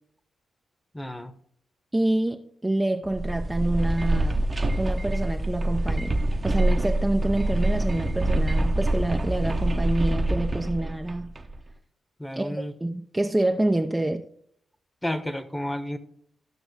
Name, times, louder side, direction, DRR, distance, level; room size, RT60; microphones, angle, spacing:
voice 1, 0.9-1.3 12.2-12.7 15.0-16.0, left 1 dB, 10° left, 1.2 m, -31 dB
voice 2, 1.9-4.4 4.8-11.3 12.3-14.3, right 1 dB, 15° right, 0.7 m, -27 dB
sound 1, 3.0-11.6, right 1 dB, 35° right, 1.0 m, -25 dB
14.0 x 6.0 x 3.3 m
supercardioid pair, 45°, 0 cm